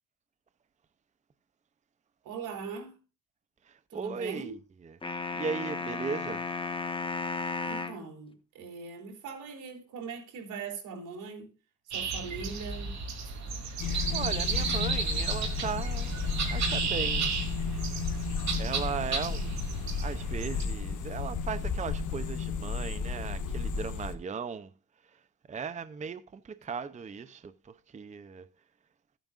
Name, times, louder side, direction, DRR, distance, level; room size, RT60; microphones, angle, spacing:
voice 1, 2.2-3.0 3.9-4.6 7.6-11.5 11.9-13.0, right 5 dB, 80° right, 3.6 m, -41 dB
voice 2, 3.6-6.5 13.6-13.8 14.1-16.1 16.5-17.4 18.2-19.5 20.0-24.7 25.1-25.2 25.5-28.5, right 5 dB, 25° right, 0.6 m, -37 dB
sound 1, 5.0-8.0, left 3 dB, 15° left, 1.3 m, -34 dB
sound 2, 11.9-20.6, right 5 dB, 65° right, 3.1 m, -33 dB
sound 3, 13.8-24.1, left 5 dB, 80° left, 1.6 m, -33 dB
15.0 x 9.1 x 2.4 m
cardioid pair, 90°, 30 cm